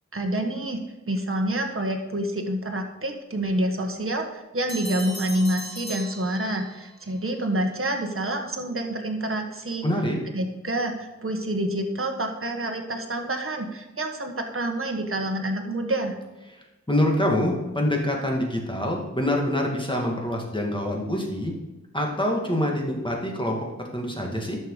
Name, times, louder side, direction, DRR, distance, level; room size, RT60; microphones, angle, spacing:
voice 1, 0.1-0.8 1.1-9.9 10.3-16.2, right 1 dB, 45° right, 3 dB, 1.3 m, -27 dB
sound 1, 4.7-6.9, equal, 65° left, 3.9 m, -38 dB
voice 2, 9.8-10.2 16.5-21.5 21.9-24.6, left 1 dB, 15° left, 0 dB, 2.4 m, -26 dB
11.0 x 6.7 x 5.0 m, 1.1 s
wide cardioid pair, 60°, 29 cm